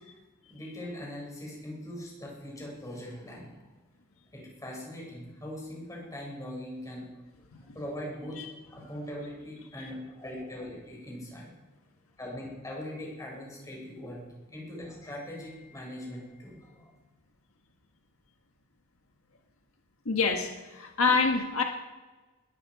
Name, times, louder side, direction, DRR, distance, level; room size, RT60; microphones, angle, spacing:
voice 1, 0.5-3.5 4.3-7.1 7.7-11.5 12.2-14.2 14.5-16.9, left 1 dB, 15° left, -2 dB, 6.5 m, -41 dB
voice 2, 20.0-21.6, left 4 dB, 75° left, 3 dB, 1.6 m, -26 dB
20.5 x 12.5 x 4.9 m, 1.2 s
head